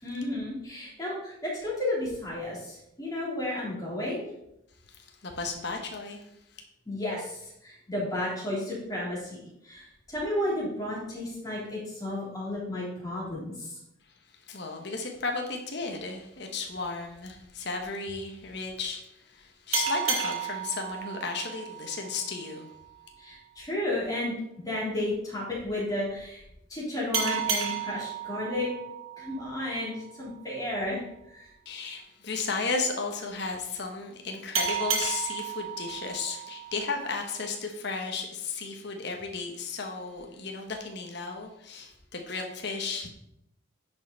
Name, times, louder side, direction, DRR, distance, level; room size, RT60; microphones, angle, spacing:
voice 1, 0.0-4.2 6.9-13.7 23.2-24.3 24.6-26.4 26.7-28.7 29.2-31.5, left 1 dB, 20° left, -6 dB, 3.2 m, -33 dB
voice 2, 5.2-6.3 14.5-19.0 19.3-22.7 31.7-43.1, left 4 dB, 55° left, 2 dB, 1.1 m, -34 dB
sound 1, 19.7-23.0 27.1-30.4 34.5-37.5, right 6 dB, 85° right, 1.9 m, -33 dB
10.5 x 5.4 x 4.0 m, 0.80 s
head